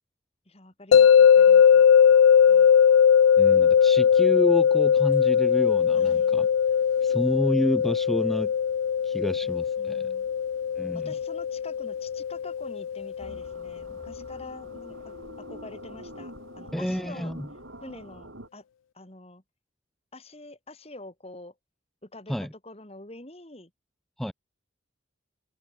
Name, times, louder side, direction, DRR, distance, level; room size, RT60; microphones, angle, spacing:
voice 1, 0.5-1.8 2.5-2.8 5.9-6.4 9.8-10.3 10.9-17.3 17.8-18.6 18.9-19.4 20.1-21.5 22.0-23.7, left 2 dB, 30° left, 2.1 m, -46 dB
sound 1, 0.9-14.0, left 8 dB, 75° left, 0.3 m, -20 dB
voice 2, 3.4-6.5 7.0-8.5 9.0-10.0 10.8-11.1 16.7-17.5 22.3-22.5 24.2-24.3, equal, ahead, 0.5 m, -29 dB
sound 2, 13.2-18.5, right 1 dB, 70° right, 5.1 m, -45 dB
head